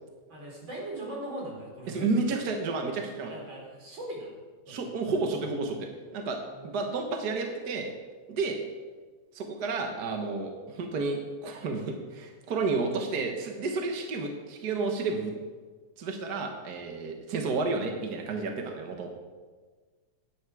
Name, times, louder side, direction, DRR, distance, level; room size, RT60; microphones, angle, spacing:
voice 1, 0.3-2.1 3.2-4.4 4.7-4.8 6.5-6.7 17.5-17.6, right 1 dB, 40° right, -3 dB, 4.6 m, -39 dB
voice 2, 1.9-3.3 4.7-7.9 8.3-8.6 9.3-15.3 16.0-19.1, right 3 dB, 55° right, 3 dB, 1.1 m, -31 dB
16.5 x 10.5 x 4.8 m, 1.4 s
omnidirectional pair, 3.4 m